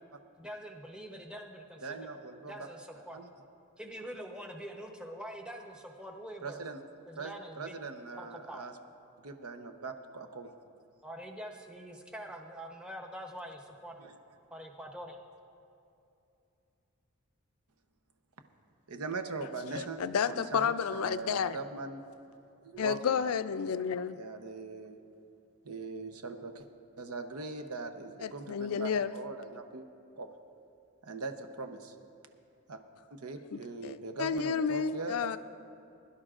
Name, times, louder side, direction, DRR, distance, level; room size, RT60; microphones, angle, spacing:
voice 1, 0.4-2.1 2.4-3.2 3.8-6.6 7.1-7.8 8.2-8.7 11.0-14.1 14.5-15.2, equal, 5° right, 2 dB, 0.8 m, -45 dB
voice 2, 1.8-2.5 3.1-3.3 6.4-6.8 7.2-8.7 9.2-10.5 14.0-14.1 18.9-20.0 20.3-22.0 22.6-23.2 24.1-25.0 25.6-26.7 27.0-29.9 30.2-30.3 31.0-31.9 32.7-32.8 33.1-35.4, right 3 dB, 90° right, 6 dB, 0.8 m, -41 dB
voice 3, 19.7-21.6 22.8-24.2 28.2-29.2 33.5-35.4, left 7 dB, 75° left, 13 dB, 0.4 m, -31 dB
21.5 x 11.5 x 2.5 m, 2.7 s
head